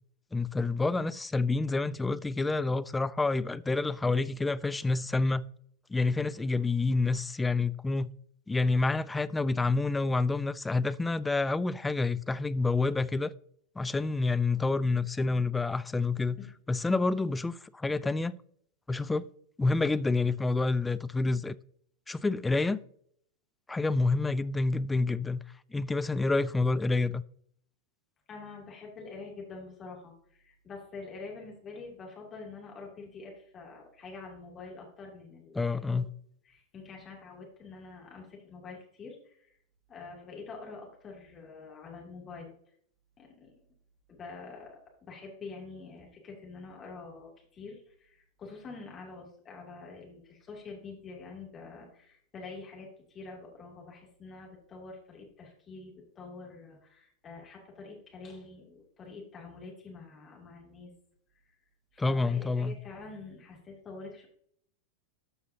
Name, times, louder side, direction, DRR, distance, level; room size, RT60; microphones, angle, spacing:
voice 1, 0.3-5.5 5.9-8.1 8.5-13.3 13.8-16.4 16.7-18.4 18.9-19.3 19.6-21.6 22.1-22.8 23.7-25.4 25.7-27.2 35.5-36.1 62.0-62.8, left 3 dB, 10° left, 0.3 m, -28 dB
voice 2, 28.3-36.0 36.4-39.5 39.9-42.5 43.2-43.5 44.1-60.9 61.9-64.3, left 4 dB, 25° left, 2.8 m, -46 dB
13.5 x 5.5 x 2.8 m
figure-of-eight pair, 90°, 0 cm